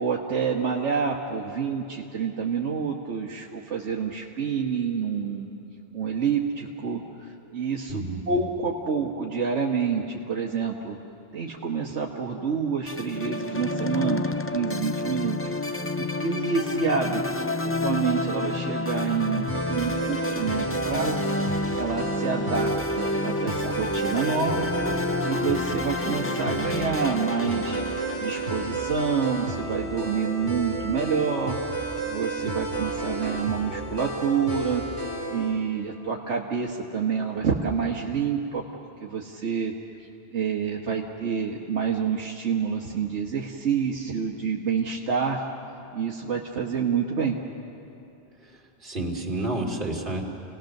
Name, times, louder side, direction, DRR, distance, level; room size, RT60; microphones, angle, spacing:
voice 1, 0.0-5.5 5.9-11.0 11.3-15.4 16.0-24.7 25.2-27.8 28.2-34.8 35.3-38.6 39.0-39.7 40.3-45.4 45.9-47.4, right 6 dB, 75° right, -1 dB, 1.5 m, -28 dB
voice 2, 7.9-8.2 48.4-50.2, right 2 dB, 45° right, -1 dB, 2.7 m, -30 dB
sound 1, 12.9-30.2, left 2 dB, 20° left, 0.3 m, -30 dB
sound 2, 19.5-35.5, right 2 dB, 70° left, 5.0 m, -32 dB
29.5 x 18.5 x 6.5 m, 2.7 s
omnidirectional pair, 1.2 m